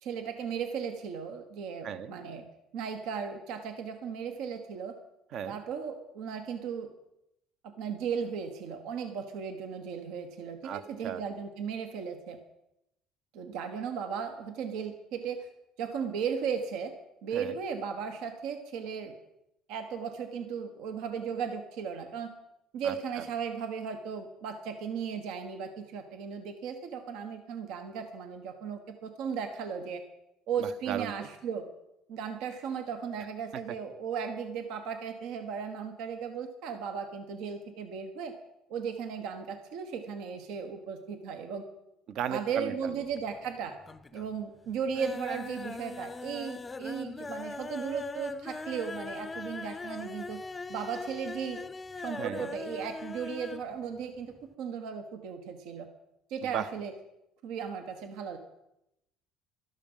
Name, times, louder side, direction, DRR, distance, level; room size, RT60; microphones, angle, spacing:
voice 1, 0.0-2.4 2.7-4.9 5.5-6.9 7.6-12.4 13.3-15.5 15.8-16.9 17.2-19.1 19.7-22.3 22.7-30.0 30.5-31.7 32.1-38.3 38.7-41.6 42.3-43.7 44.1-50.4 50.7-51.6 51.9-55.9 56.3-56.9 57.4-58.4, right 6 dB, 75° right, 6 dB, 1.4 m, -36 dB
voice 2, 10.6-11.2 17.3-17.5 22.8-23.2 30.6-31.3 42.1-42.9 52.2-52.5 56.5-56.7, right 8 dB, 60° right, 12 dB, 0.9 m, -36 dB
sound 1, 42.9-43.5 43.8-44.3 44.7-53.7 54.0-54.1 54.4-54.5, left 3 dB, 20° left, 0.5 m, -41 dB
12.5 x 12.0 x 5.6 m, 0.85 s
cardioid pair, 125°, 0 cm